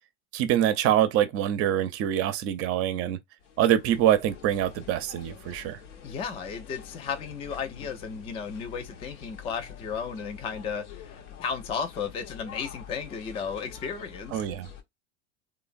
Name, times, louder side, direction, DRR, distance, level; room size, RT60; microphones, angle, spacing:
voice 1, 0.3-3.2 3.6-5.8 14.3-14.7, right 11 dB, 40° right, 0.5 m, -25 dB
sound 1, 3.4-14.8, left 8 dB, 85° left, 0.7 m, -46 dB
voice 2, 6.0-14.4, left 6 dB, 15° left, 0.3 m, -34 dB
3.0 x 2.0 x 2.5 m
hypercardioid pair, 100°, 36 cm